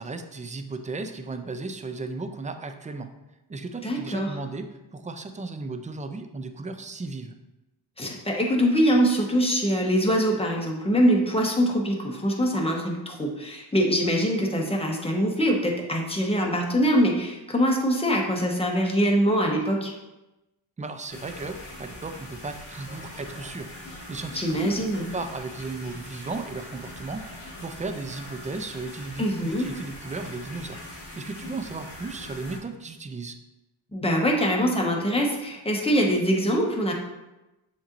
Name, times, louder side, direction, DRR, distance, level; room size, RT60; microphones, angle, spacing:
voice 1, 0.0-3.1 3.5-4.7 4.9-7.3 20.8-33.4, right 3 dB, 15° right, 7 dB, 0.4 m, -35 dB
voice 2, 3.8-4.3 8.0-19.9 24.3-25.1 29.2-29.7 33.9-36.9, equal, 10° left, 0 dB, 1.0 m, -23 dB
sound 1, 21.1-32.6, left 1 dB, 30° left, 1.5 m, -42 dB
7.0 x 3.0 x 2.5 m, 1.0 s
cardioid pair, 65°, 47 cm